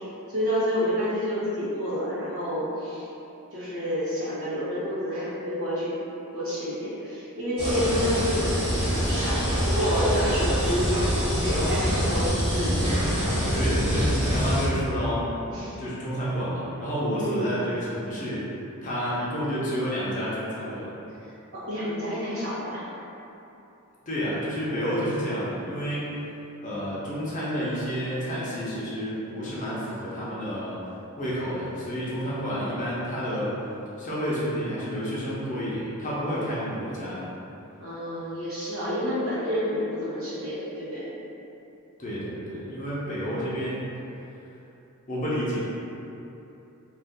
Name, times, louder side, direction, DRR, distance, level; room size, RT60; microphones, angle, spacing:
voice 1, 0.3-3.1 3.5-6.0 6.3-11.0 11.3-12.8 15.5-15.8 17.1-17.6 21.5-22.8 37.8-41.0, equal, 65° right, -10 dB, 1.0 m, -29 dB
sound 1, 7.6-14.7, equal, 25° right, 0.8 m, -25 dB
voice 2, 13.5-15.3 15.8-18.5 18.8-20.9 24.1-26.1 26.6-30.8 31.2-33.6 34.0-37.3 42.0-43.9 45.1-45.7, equal, 35° left, -8 dB, 0.7 m, -30 dB
2.6 x 2.4 x 3.5 m, 3.0 s
head